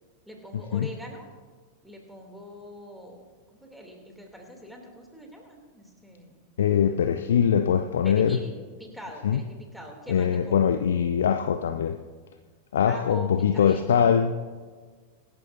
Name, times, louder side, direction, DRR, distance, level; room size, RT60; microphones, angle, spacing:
voice 1, 0.3-1.3 1.8-3.2 3.5-6.3 8.0-10.7 12.9-14.1, equal, ahead, 1 dB, 2.9 m, -43 dB
voice 2, 6.6-8.4 9.2-9.4 10.1-12.0 12.7-14.4, left 8 dB, 65° left, 9 dB, 0.5 m, -22 dB
25.0 x 12.5 x 2.7 m, 1.5 s
figure-of-eight pair, 90°, 0 cm